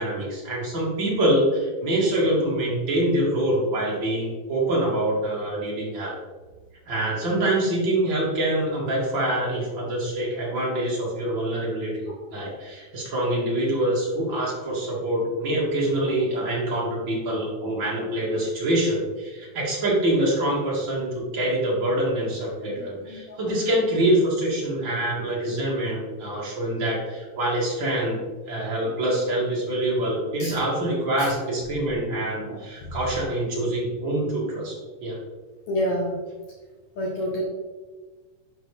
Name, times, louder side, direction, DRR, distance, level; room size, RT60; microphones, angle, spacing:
voice 1, 0.0-6.2 6.9-28.2 28.5-34.7 35.0-35.2, right 1 dB, 35° right, -5 dB, 2.4 m, -25 dB
voice 2, 22.7-23.4 30.4-30.6 31.2-31.3 35.7-36.2 37.0-37.4, equal, 65° left, -3 dB, 2.0 m, -28 dB
10.5 x 5.9 x 3.5 m, 1.3 s
omnidirectional pair, 4.5 m